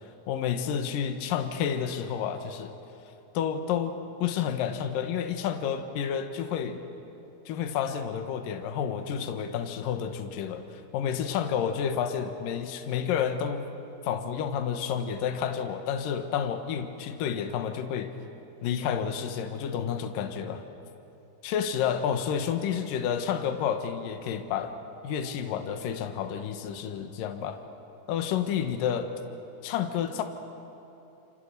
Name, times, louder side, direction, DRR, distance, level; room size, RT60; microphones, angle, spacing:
voice 1, 0.3-2.7 3.3-3.9 4.2-6.8 7.5-13.7 14.0-18.1 18.6-20.6 21.4-24.7 25.0-27.6 28.1-29.0 29.6-30.2, left 8 dB, 65° left, 7 dB, 2.8 m, -30 dB
28.5 x 28.5 x 6.8 m, 2.9 s
omnidirectional pair, 4.6 m